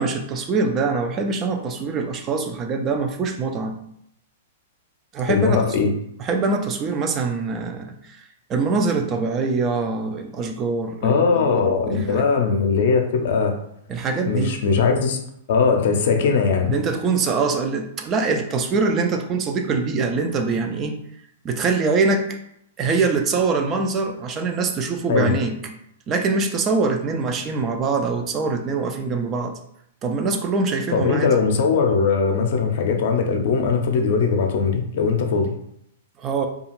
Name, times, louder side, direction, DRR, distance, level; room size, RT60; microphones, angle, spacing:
voice 1, 0.0-3.8 5.1-5.6 6.2-8.2 8.5-11.1 11.5-11.6 12.1-12.2 13.9-14.6 16.7-21.0 21.4-22.4 22.8-25.7 26.1-29.6 30.0-31.4 36.2-36.5, right 4 dB, 30° right, 4 dB, 0.3 m, -23 dB
voice 2, 5.3-5.9 11.0-13.5 14.2-15.2 15.5-16.7 25.1-25.4 30.9-35.5, left 5 dB, 65° left, 4 dB, 0.5 m, -20 dB
2.4 x 2.3 x 3.0 m, 0.74 s
hypercardioid pair, 130°, 0 cm